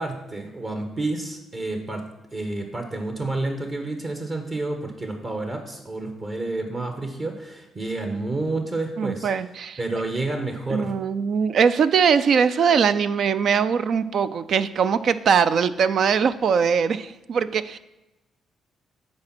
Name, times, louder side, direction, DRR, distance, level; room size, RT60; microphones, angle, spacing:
voice 1, 0.0-2.0 2.3-9.3 9.8-11.0, right 2 dB, 40° right, 4 dB, 1.3 m, -29 dB
voice 2, 9.0-9.8 10.7-17.8, right 6 dB, 60° right, 13 dB, 0.3 m, -21 dB
9.5 x 4.2 x 6.0 m, 0.98 s
hypercardioid pair, 45°, 0 cm